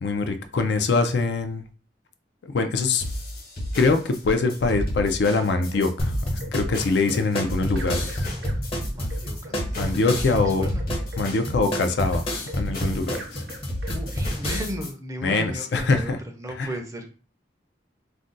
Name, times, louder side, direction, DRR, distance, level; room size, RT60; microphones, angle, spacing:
voice 1, 0.0-1.7 2.4-3.0 3.8-6.1 6.5-8.3 9.8-10.7 11.2-12.2 12.5-13.4 15.2-16.2 16.6-16.7, left 3 dB, 70° left, 8 dB, 0.4 m, -23 dB
sound 1, 3.0-14.9, left 1 dB, 50° left, 1.2 m, -33 dB
sound 2, 4.0-14.7, right 1 dB, 75° right, 0.7 m, -36 dB
sound 3, 6.0-14.7, equal, 30° left, 0.7 m, -29 dB
voice 2, 8.9-10.0 10.3-10.9 13.9-17.1, equal, 20° right, 4 dB, 0.4 m, -35 dB
2.5 x 2.2 x 3.7 m, 0.36 s
head